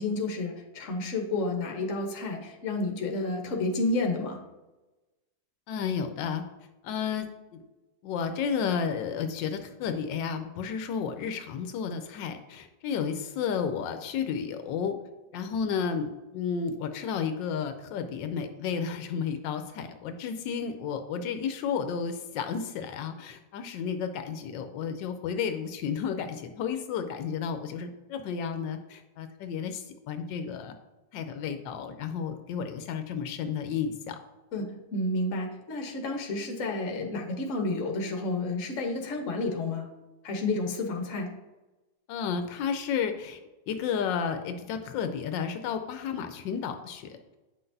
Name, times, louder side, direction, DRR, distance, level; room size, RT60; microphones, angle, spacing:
voice 1, 0.0-4.4 34.5-39.9 40.2-41.3, left 2 dB, 50° left, 2 dB, 1.3 m, -30 dB
voice 2, 5.7-6.4 6.8-7.3 8.0-15.0 15.3-30.7 31.1-34.2 42.1-43.4 43.7-47.4, left 6 dB, 85° left, 7 dB, 1.3 m, -32 dB
8.9 x 5.8 x 2.6 m, 1.1 s
omnidirectional pair, 1.9 m